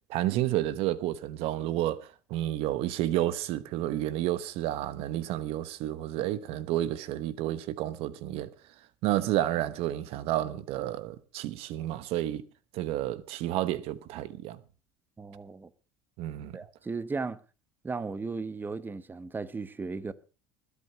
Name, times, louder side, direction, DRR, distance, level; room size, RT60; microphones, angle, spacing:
voice 1, 0.1-8.5 9.0-12.4 12.7-14.6 16.2-16.5, right 13 dB, 65° right, 1.1 m, -30 dB
voice 2, 15.2-15.7 16.5-17.4 17.8-20.1, right 4 dB, 20° right, 1.0 m, -36 dB
20.5 x 8.3 x 5.8 m
supercardioid pair, 100°, 11 cm